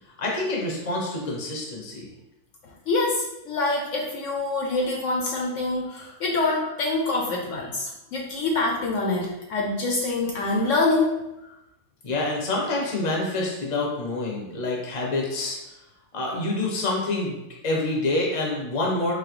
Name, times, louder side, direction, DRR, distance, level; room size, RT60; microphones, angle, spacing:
voice 1, 0.2-2.1 12.0-15.6 16.1-19.1, left 2 dB, 30° left, -2 dB, 0.7 m, -27 dB
voice 2, 2.6-11.1 11.4-11.6, left 2 dB, 65° left, -1 dB, 0.9 m, -25 dB
3.9 x 3.0 x 3.0 m, 0.92 s
omnidirectional pair, 1.5 m